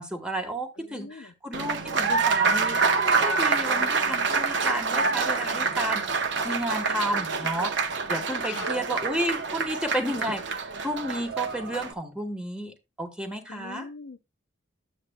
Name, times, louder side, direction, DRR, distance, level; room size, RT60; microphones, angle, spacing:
voice 1, 0.0-6.0 6.4-7.7 8.1-13.9, right 1 dB, 5° right, 1.2 m, -32 dB
voice 2, 0.8-1.3 6.9-7.5 8.4-8.7 13.5-14.2, left 4 dB, 65° left, 0.6 m, -43 dB
Applause, 1.5-11.9, right 4 dB, 60° right, 0.8 m, -26 dB
11.0 x 8.2 x 2.2 m
head